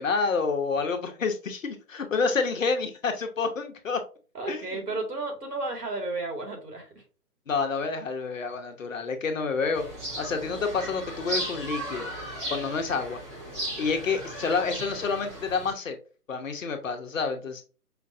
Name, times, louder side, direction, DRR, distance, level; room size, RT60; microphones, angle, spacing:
voice 1, 0.0-4.0 4.5-4.8 7.5-9.9 10.2-12.1 12.5-13.2 13.8-16.0 16.3-17.6, left 4 dB, 55° left, 0.9 m, -28 dB
voice 2, 4.3-7.0, right 2 dB, 80° right, 2.0 m, -33 dB
sound 1, 9.7-15.7, right 1 dB, 15° right, 1.1 m, -36 dB
5.1 x 2.5 x 2.6 m
figure-of-eight pair, 155°, 47 cm